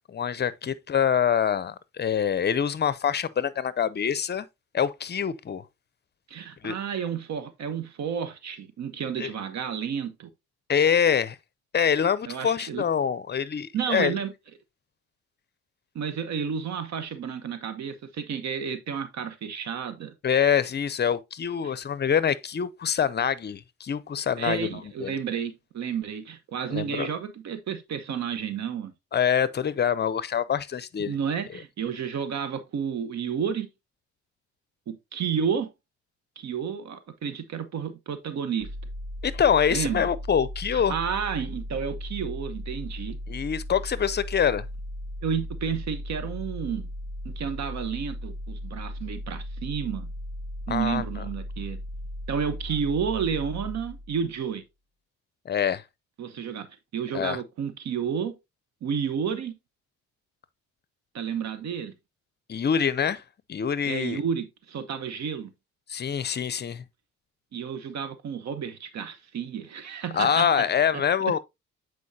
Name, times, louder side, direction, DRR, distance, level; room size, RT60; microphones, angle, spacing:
voice 1, 0.1-4.5 4.7-5.6 6.6-6.8 9.2-9.3 10.7-11.4 11.7-14.2 20.2-25.1 26.7-27.1 29.1-31.1 39.2-40.9 43.3-44.6 50.7-51.0 55.5-55.8 57.1-57.4 62.5-63.2 63.5-64.2 65.9-66.8 70.1-71.4, left 8 dB, 35° left, 0.6 m, -25 dB
voice 2, 6.3-10.3 12.3-12.8 13.7-14.3 15.9-20.1 21.6-21.7 24.4-28.9 31.0-33.7 34.9-35.7 36.4-38.7 39.7-40.0 40.7-43.2 45.2-46.9 47.2-50.1 50.7-51.8 52.3-54.6 56.2-56.7 56.9-58.3 58.8-59.5 61.1-61.9 63.9-65.5 67.5-70.5 71.3-71.4, right 7 dB, 65° right, 1.0 m, -31 dB
sound 1, 38.6-54.4, equal, 30° right, 1.0 m, -37 dB
8.4 x 4.6 x 2.7 m
cardioid pair, 90°, 30 cm